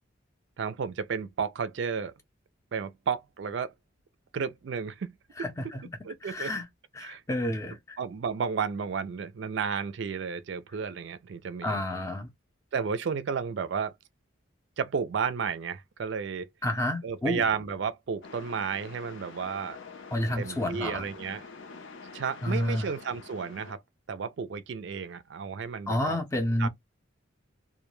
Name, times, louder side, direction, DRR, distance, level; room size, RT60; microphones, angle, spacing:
voice 1, 0.6-2.1 2.7-3.7 4.3-5.2 6.0-6.5 7.0-7.2 8.0-11.8 12.7-14.0 14.8-16.5 17.0-19.8 20.4-21.5 22.1-23.8 24.1-26.2 26.6-26.7, right 6 dB, 65° right, 0.4 m, -32 dB
voice 2, 5.4-5.8 6.2-6.7 6.9-8.0 11.6-12.3 16.6-17.4 20.1-21.1 22.4-22.9 25.9-26.7, left 1 dB, 15° left, 0.5 m, -30 dB
sound 1, 18.2-23.8, left 4 dB, 75° left, 0.7 m, -46 dB
2.2 x 2.1 x 3.0 m
head